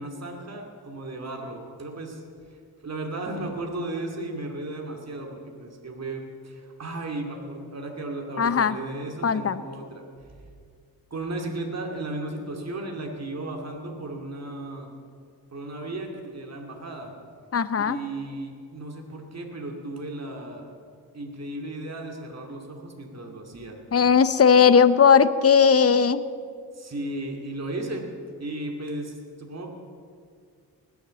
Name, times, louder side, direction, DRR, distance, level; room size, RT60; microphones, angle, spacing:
voice 1, 0.0-2.2 2.8-10.0 10.3-10.4 11.1-14.9 15.5-17.1 17.8-20.7 21.1-23.8 26.7-28.1 28.4-29.7, right 2 dB, 45° right, 2 dB, 2.4 m, -35 dB
voice 2, 8.4-8.8 9.2-9.6 17.5-18.0 23.9-26.2, left 6 dB, 40° left, 15 dB, 0.7 m, -18 dB
19.5 x 7.3 x 7.6 m, 2.2 s
cardioid pair, 65°, 37 cm